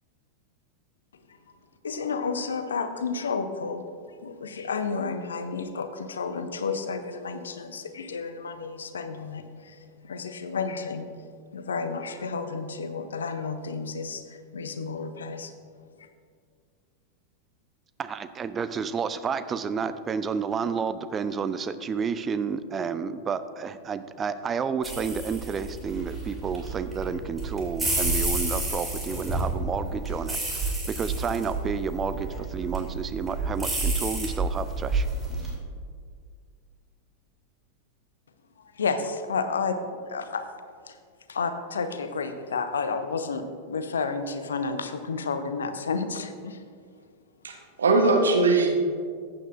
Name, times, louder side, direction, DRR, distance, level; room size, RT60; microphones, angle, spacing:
voice 1, 1.8-3.8 4.2-9.8 10.0-11.1 11.5-15.5 38.6-39.8 40.1-40.5 40.9-41.0 41.3-46.6, left 4 dB, 70° left, 10 dB, 0.7 m, -31 dB
voice 2, 18.0-35.1, right 6 dB, 20° right, 12 dB, 0.4 m, -31 dB
sound 1, 24.8-35.5, right 2 dB, 5° right, 2.7 m, -30 dB
voice 3, 47.4-48.7, right 3 dB, 70° right, 3 dB, 1.0 m, -21 dB
14.5 x 8.7 x 2.6 m, 2.1 s
figure-of-eight pair, 90°, 0 cm